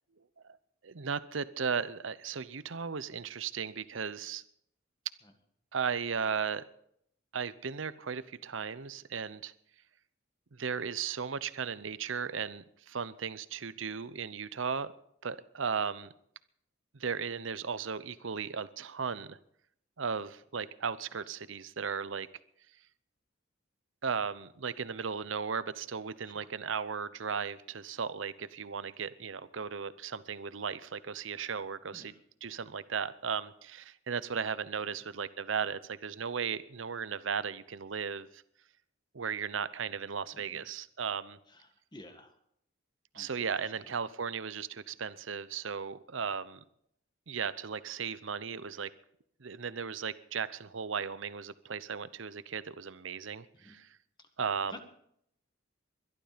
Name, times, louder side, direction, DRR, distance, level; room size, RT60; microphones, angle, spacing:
voice 1, 0.8-4.4 5.7-6.6 7.3-9.5 10.5-14.9 15.2-16.1 17.0-19.4 20.0-22.3 24.0-32.1 32.4-38.4 39.1-41.4 43.1-46.6 47.3-48.9 49.4-53.9 54.4-54.8, right 6 dB, 70° right, 16 dB, 0.7 m, -36 dB
voice 2, 40.3-40.6 41.5-42.3 43.1-43.7 53.6-53.8 54.7-54.8, left 1 dB, 20° left, 6 dB, 1.9 m, -51 dB
22.0 x 12.0 x 5.1 m, 0.71 s
head